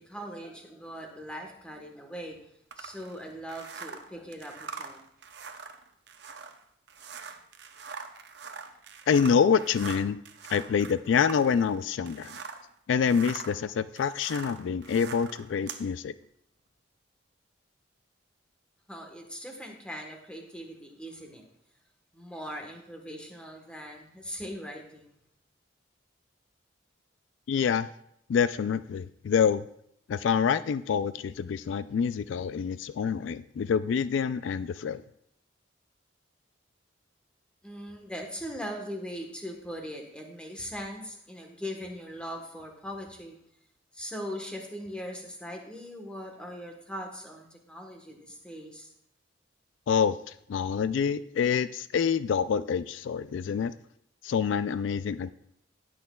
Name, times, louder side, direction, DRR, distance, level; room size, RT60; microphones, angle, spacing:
voice 1, 0.0-2.4 2.8-5.1 18.9-21.4 22.1-25.1 37.6-43.4 43.9-48.9, equal, 5° left, 2 dB, 1.1 m, -40 dB
sound 1, 2.7-12.7 13.0-15.9, right 5 dB, 60° right, 0.7 m, -43 dB
voice 2, 9.1-10.2 10.5-12.4 12.9-16.1 27.5-27.9 28.3-29.7 30.1-35.0 49.9-50.2 50.5-53.7 54.2-55.3, left 6 dB, 75° left, 14 dB, 0.3 m, -26 dB
18.0 x 6.2 x 2.3 m, 0.72 s
head